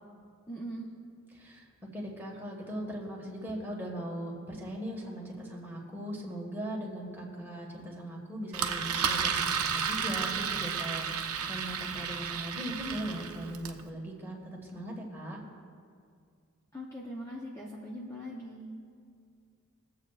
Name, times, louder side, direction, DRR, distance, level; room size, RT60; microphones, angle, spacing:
voice 1, 0.5-0.9 16.7-18.7, equal, 15° left, -4 dB, 0.7 m, -41 dB
voice 2, 1.3-1.7 1.9-15.4, right 1 dB, 10° right, -3 dB, 1.6 m, -39 dB
Engine, 8.5-13.8, right 6 dB, 85° right, 0.7 m, -32 dB
22.5 x 7.7 x 2.4 m, 2.2 s
head